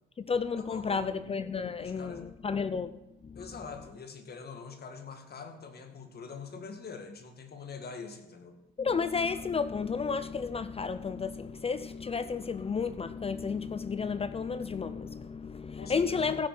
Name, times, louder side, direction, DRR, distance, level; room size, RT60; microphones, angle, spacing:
voice 1, 0.2-3.0 3.2-3.5 8.8-16.5, left 5 dB, 30° left, 0.6 m, -32 dB
voice 2, 0.7-1.3 1.8-2.3 3.3-8.6 15.8-16.4, left 5 dB, 55° left, 2.0 m, -44 dB
15.5 x 7.3 x 6.0 m
cardioid pair, 90°, 20 cm